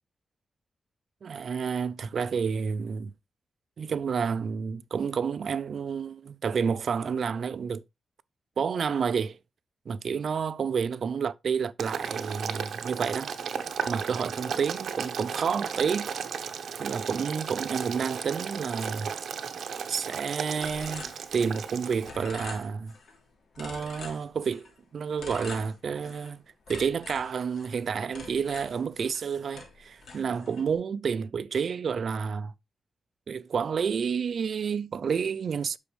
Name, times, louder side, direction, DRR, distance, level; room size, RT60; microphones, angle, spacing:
voice 1, 1.2-3.1 3.8-7.8 8.6-9.4 9.9-13.3 13.9-16.1 16.8-19.1 19.9-22.9 23.6-26.4 26.7-32.5 33.3-35.8, right 6 dB, 60° right, 0.4 m, -30 dB
Boiling, 11.8-22.1, right 7 dB, 80° right, 0.8 m, -35 dB
sound 1, 20.6-21.8 22.0-23.2 23.5-24.7 25.2-26.3 26.7-29.3 29.5-30.7, left 3 dB, 80° left, 2.9 m, -44 dB
8.2 x 6.2 x 3.2 m
wide cardioid pair, 130°, 0 cm